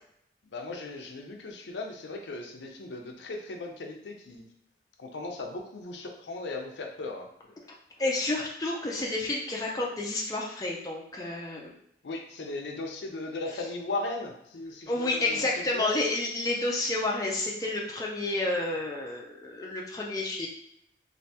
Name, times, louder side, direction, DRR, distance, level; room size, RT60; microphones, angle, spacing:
voice 1, 0.5-4.5 5.0-7.6 12.0-15.9, left 2 dB, 75° left, 2 dB, 0.5 m, -37 dB
voice 2, 8.0-11.7 14.9-20.5, left 2 dB, 20° left, -2 dB, 0.4 m, -30 dB
3.2 x 2.6 x 2.8 m, 0.75 s
head